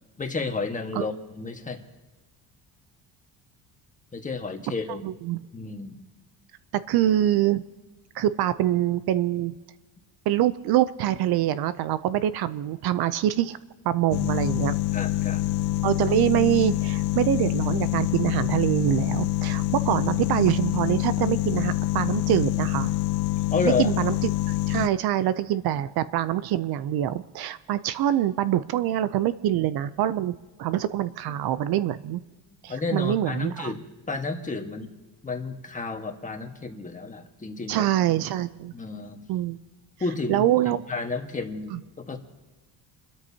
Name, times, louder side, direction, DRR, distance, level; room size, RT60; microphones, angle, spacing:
voice 1, 0.2-1.8 4.1-5.1 5.5-6.0 14.9-15.5 23.3-23.9 32.7-34.9 35.2-37.9 38.7-39.4 40.0-42.2, left 4 dB, 20° left, 4 dB, 1.5 m, -31 dB
voice 2, 5.0-5.4 6.7-7.6 8.1-9.5 10.3-13.6 13.8-14.7 15.8-22.9 23.6-24.1 24.5-32.2 32.6-33.7 37.7-38.7 39.3-39.6 40.3-40.8 41.7-41.8, right 12 dB, 60° right, 15 dB, 0.6 m, -25 dB
sound 1, 14.1-24.9, left 15 dB, 70° left, 0.7 m, -26 dB
29.5 x 13.0 x 2.8 m, 1.2 s
cardioid pair, 125°, 41 cm